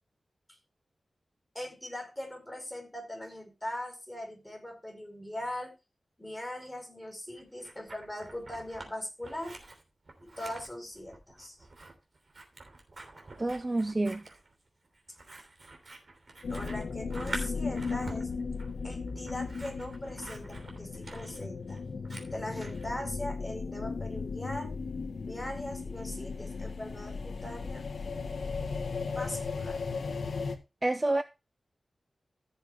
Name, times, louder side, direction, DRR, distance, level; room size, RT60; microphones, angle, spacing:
voice 1, 1.5-5.7 6.2-9.5 10.2-11.6 16.5-18.3 18.8-21.8 22.3-24.8 25.2-27.8 29.1-29.8, left 1 dB, 10° left, 4.6 m, -40 dB
Scissors, 7.4-8.9 9.2-22.9, right 2 dB, 50° right, 3.1 m, -47 dB
voice 2, 13.4-14.2 30.8-31.2, right 2 dB, 25° right, 0.6 m, -28 dB
sound 1, 16.4-30.6, left 4 dB, 80° left, 1.5 m, -36 dB
15.0 x 7.1 x 3.4 m
wide cardioid pair, 95°, 0 cm